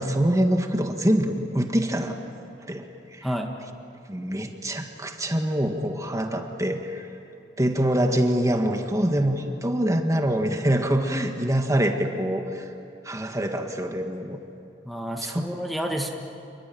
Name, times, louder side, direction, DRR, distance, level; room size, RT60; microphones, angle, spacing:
voice 1, 0.0-2.2 2.6-3.3 4.1-7.1 7.6-12.7 13.0-14.4 15.2-15.5, right 1 dB, 20° right, 4 dB, 1.7 m, -25 dB
voice 2, 3.2-3.5 14.8-16.1, equal, ahead, 2 dB, 1.6 m, -29 dB
29.0 x 21.5 x 9.3 m, 2.7 s
head